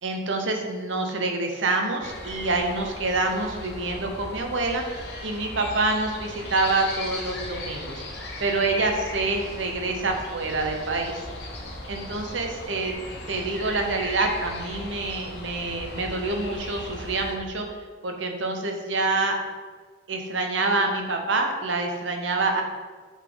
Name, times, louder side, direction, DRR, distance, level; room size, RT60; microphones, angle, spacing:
voice 1, 0.0-4.8 5.2-8.0 8.4-11.2 11.9-12.9 13.3-17.8 18.0-19.4 20.1-22.6, right 3 dB, 80° right, 3 dB, 0.9 m, -26 dB
sound 1, 2.0-17.4, left 2 dB, 60° left, 1.0 m, -37 dB
8.2 x 4.0 x 3.9 m, 1.5 s
head